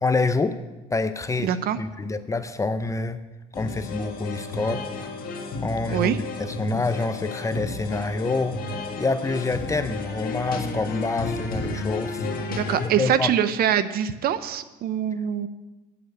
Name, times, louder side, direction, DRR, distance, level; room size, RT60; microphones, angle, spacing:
voice 1, 0.0-0.6 0.9-3.2 3.6-5.1 5.6-8.6 9.0-12.3 12.8-13.3, left 3 dB, 15° left, 11 dB, 0.6 m, -27 dB
voice 2, 1.4-1.8 5.9-6.2 12.5-15.5, right 9 dB, 60° right, 13 dB, 0.7 m, -24 dB
sound 1, 3.5-12.9, left 3 dB, 55° left, 1.5 m, -32 dB
8.7 x 6.5 x 8.0 m, 1.1 s
cardioid pair, 100°, 18 cm